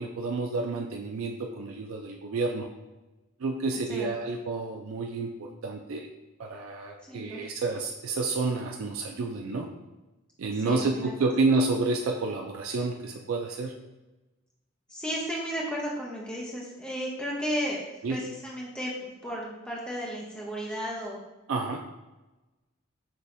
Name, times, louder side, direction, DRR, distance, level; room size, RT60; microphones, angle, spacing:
voice 1, 0.0-2.7 3.4-6.1 6.4-9.7 10.4-13.7 18.0-18.2 21.5-21.8, right 3 dB, 85° right, 2 dB, 0.4 m, -29 dB
voice 2, 3.7-4.3 7.0-7.4 10.6-11.1 14.9-21.2, equal, 5° left, -4 dB, 0.6 m, -34 dB
5.7 x 3.1 x 2.6 m, 1.1 s
head